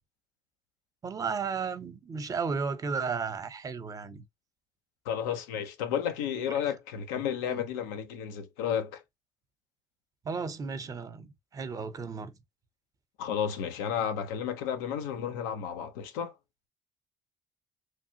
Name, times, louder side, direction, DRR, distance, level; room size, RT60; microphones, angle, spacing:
voice 1, 1.0-4.3 7.5-7.6 10.2-12.3, right 5 dB, 35° right, 0.8 m, -34 dB
voice 2, 5.1-9.0 13.2-16.3, left 8 dB, 80° left, 0.7 m, -32 dB
3.2 x 2.4 x 2.8 m
hypercardioid pair, 60°, 10 cm